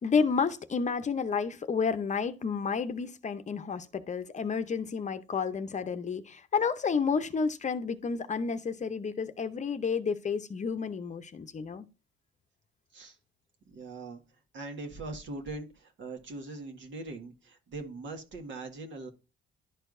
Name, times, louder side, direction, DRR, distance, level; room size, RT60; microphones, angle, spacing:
voice 1, 0.0-11.9, left 5 dB, 35° left, 0.7 m, -30 dB
voice 2, 13.7-14.2 14.5-19.1, right 2 dB, 70° right, 1.7 m, -41 dB
11.5 x 4.5 x 2.5 m
cardioid pair, 90°, 20 cm